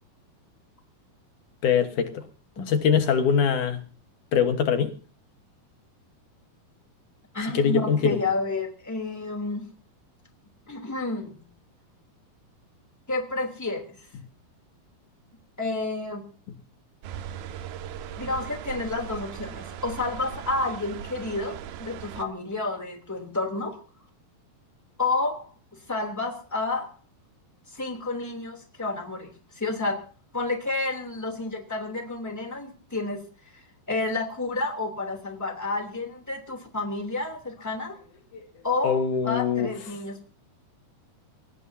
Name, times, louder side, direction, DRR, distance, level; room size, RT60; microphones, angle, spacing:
voice 1, 1.6-2.2 2.6-3.8 4.3-4.9 7.5-8.2 38.8-39.7, left 7 dB, 60° left, 2.5 m, -23 dB
voice 2, 7.3-9.7 10.7-11.5 13.1-14.0 15.6-16.2 18.2-23.8 25.0-25.4 25.7-26.9 27.7-30.0 30.3-33.2 33.5-38.0 38.6-39.0 39.2-40.2, left 3 dB, 5° left, 2.5 m, -30 dB
sound 1, 17.0-22.3, right 9 dB, 80° right, 2.8 m, -39 dB
24.0 x 19.0 x 2.8 m
omnidirectional pair, 4.5 m